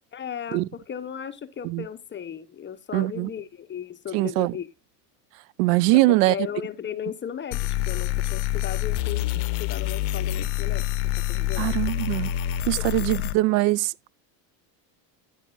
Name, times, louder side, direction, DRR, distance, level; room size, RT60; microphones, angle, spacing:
voice 1, 0.1-4.7 5.9-10.9 11.1-11.8 12.8-13.1, left 8 dB, 25° left, 0.8 m, -36 dB
voice 2, 2.9-3.3 4.1-4.5 5.6-6.3 11.6-12.3 12.7-13.9, right 19 dB, 80° right, 0.5 m, -22 dB
sound 1, 7.5-13.3, left 14 dB, 65° left, 0.7 m, -27 dB
9.8 x 9.0 x 2.3 m
supercardioid pair, 110°, 48 cm